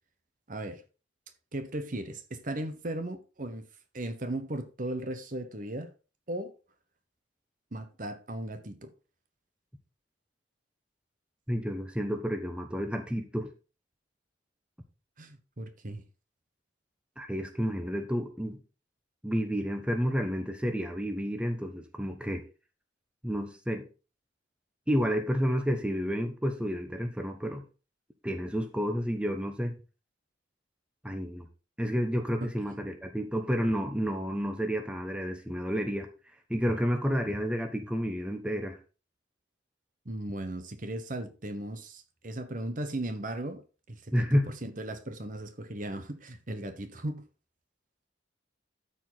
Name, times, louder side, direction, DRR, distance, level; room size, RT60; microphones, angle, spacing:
voice 1, 0.5-0.8 1.5-3.6 3.9-5.9 6.3-6.5 7.7-8.9 15.2-16.0 32.4-32.5 40.0-43.6 43.9-44.3 44.6-47.2, right 1 dB, 40° right, 1.0 m, -37 dB
voice 2, 11.5-13.5 17.2-18.6 19.2-22.4 23.2-23.9 24.9-27.6 28.2-29.7 31.0-31.5 31.8-36.1 36.5-38.8 44.1-44.5, equal, 5° right, 1.0 m, -30 dB
13.0 x 4.8 x 4.0 m
head